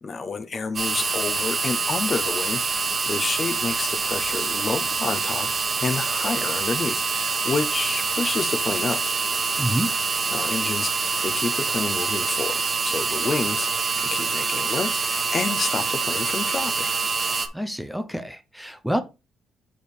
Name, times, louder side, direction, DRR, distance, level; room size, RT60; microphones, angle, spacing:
voice 1, 0.0-5.5 5.8-9.0 10.3-13.7 14.0-16.9, left 4 dB, 35° left, 0.8 m, -29 dB
sound 1, 0.8-17.5, right 4 dB, 35° right, 1.1 m, -25 dB
voice 2, 9.6-10.0 17.5-19.0, equal, ahead, 0.7 m, -27 dB
5.2 x 5.1 x 4.6 m
cardioid pair, 115°, 0 cm